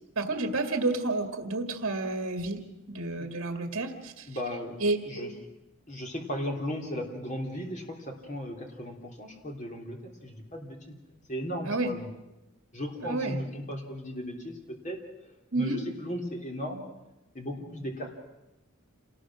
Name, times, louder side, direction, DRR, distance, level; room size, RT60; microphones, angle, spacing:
voice 1, 0.2-4.2 4.8-5.0 11.6-11.9 13.0-13.4 15.5-15.8, right 2 dB, 65° right, 5 dB, 2.1 m, -30 dB
voice 2, 4.3-4.8 5.0-5.3 5.9-10.9 11.3-12.1 12.7-15.0 15.5-16.8 17.3-18.1, equal, 35° left, 1 dB, 3.4 m, -36 dB
27.5 x 19.0 x 6.3 m, 0.99 s
head